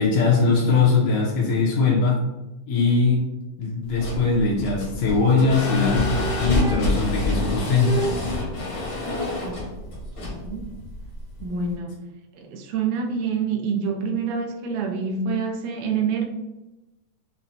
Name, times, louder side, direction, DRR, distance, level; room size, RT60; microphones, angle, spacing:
voice 1, 0.0-2.2 2.7-3.3 3.6-8.0, left 4 dB, 80° left, -4 dB, 1.6 m, -21 dB
sound 1, 3.8-11.7, left 2 dB, 60° left, 1.1 m, -28 dB
sound 2, 5.2-6.1 6.5-7.1 7.8-9.6, left 1 dB, 55° right, 1.0 m, -32 dB
voice 2, 10.2-10.8 11.4-12.0 12.3-16.2, right 5 dB, 80° right, 2 dB, 1.8 m, -27 dB
5.7 x 2.1 x 2.6 m, 1.0 s
omnidirectional pair, 3.8 m